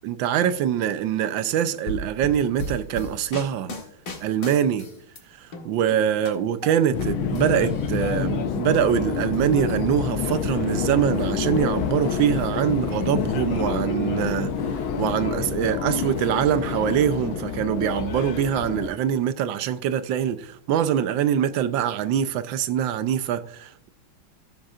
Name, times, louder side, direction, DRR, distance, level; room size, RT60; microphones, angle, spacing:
voice 1, 0.0-3.7 4.2-4.8 5.4-14.5 15.0-23.9, right 9 dB, 70° right, 1.3 m, -24 dB
sound 1, 1.9-5.2 5.5-7.1 7.4-8.2, left 1 dB, 40° left, 1.8 m, -35 dB
Subway metro underground, 6.9-18.9, left 6 dB, 75° left, 1.6 m, -27 dB
16.0 x 7.5 x 2.4 m
omnidirectional pair, 2.3 m